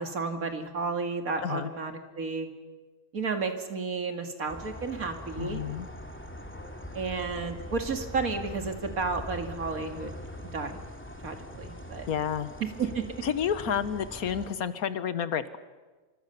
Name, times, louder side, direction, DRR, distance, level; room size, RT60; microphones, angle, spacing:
voice 1, 0.0-2.5 3.1-5.6 6.9-10.1 10.4-10.8 11.2-12.1 12.8-13.0, right 4 dB, 70° right, 5 dB, 2.7 m, -32 dB
Night Atmos with distant traffic crickets and dogs barking, 4.5-14.5, equal, 10° left, 2.4 m, -42 dB
voice 2, 5.4-5.9 12.1-12.5 13.2-15.6, left 8 dB, 75° left, 13 dB, 1.6 m, -30 dB
26.0 x 25.0 x 7.0 m, 1.3 s
omnidirectional pair, 1.6 m